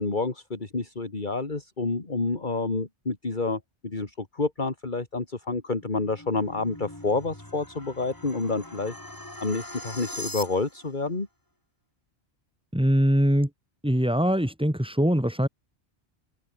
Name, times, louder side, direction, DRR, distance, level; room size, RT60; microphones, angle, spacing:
voice 1, 0.0-8.9 9.4-11.3, left 3 dB, 45° left, 2.5 m, -29 dB
sound 1, 5.8-10.9, left 1 dB, 20° left, 3.0 m, -41 dB
voice 2, 12.7-13.5 13.8-15.5, equal, 5° right, 2.1 m, -22 dB
omnidirectional pair, 1.1 m